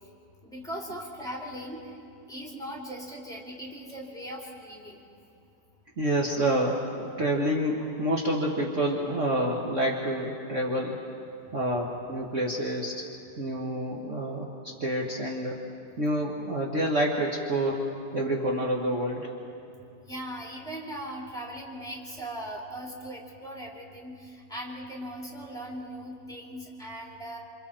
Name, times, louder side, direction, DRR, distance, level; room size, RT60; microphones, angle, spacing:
voice 1, 0.4-2.0 2.3-5.0 20.1-27.4, equal, ahead, -2 dB, 3.0 m, -39 dB
voice 2, 6.0-11.1 11.5-13.1 13.4-15.7 16.0-19.3, right 1 dB, 45° right, -2 dB, 1.8 m, -28 dB
27.5 x 27.0 x 4.4 m, 2.7 s
omnidirectional pair, 1.9 m